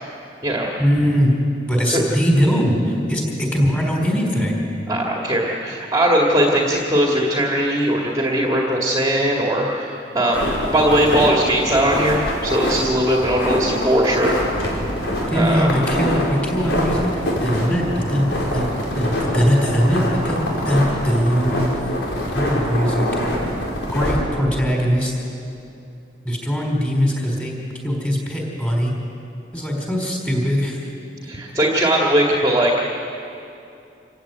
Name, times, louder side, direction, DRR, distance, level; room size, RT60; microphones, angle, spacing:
voice 1, 0.8-1.4 1.7-4.6 15.3-17.1 17.4-18.7 18.9-21.7 22.3-23.2 23.9-25.1 26.2-27.6 27.8-28.9 29.5-30.8, equal, 10° left, 0 dB, 4.3 m, -20 dB
voice 2, 4.9-14.4 15.3-15.7 31.2-32.7, right 1 dB, 20° right, -2 dB, 2.1 m, -19 dB
sound 1, 10.3-24.2, equal, 75° left, 5.0 m, -24 dB
26.5 x 15.5 x 9.3 m, 2.7 s
head